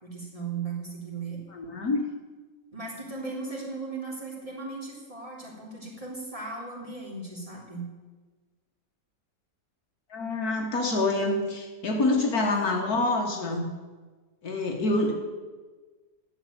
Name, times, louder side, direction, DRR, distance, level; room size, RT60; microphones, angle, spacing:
voice 1, 0.0-1.4 2.7-7.9 12.5-12.7, right 4 dB, 20° right, -4 dB, 3.2 m, -37 dB
voice 2, 1.5-2.0 10.1-13.7 14.4-15.1, left 2 dB, 60° left, 2 dB, 1.8 m, -26 dB
11.5 x 7.9 x 8.9 m, 1.4 s
omnidirectional pair, 1.8 m